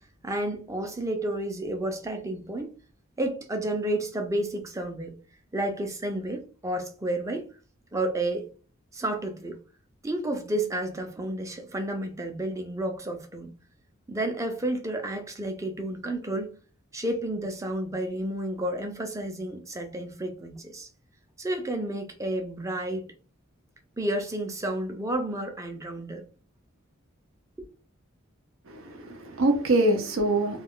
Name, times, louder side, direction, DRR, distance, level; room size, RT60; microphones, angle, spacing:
voice 1, 0.2-2.7 3.2-5.2 5.5-7.5 7.9-8.5 8.9-9.6 10.0-13.5 14.1-16.5 16.9-20.9 21.4-23.1 24.0-26.3, right 1 dB, 15° right, 0.5 m, -31 dB
voice 2, 28.7-30.6, right 1 dB, 75° right, 0.6 m, -24 dB
2.4 x 2.3 x 3.6 m
head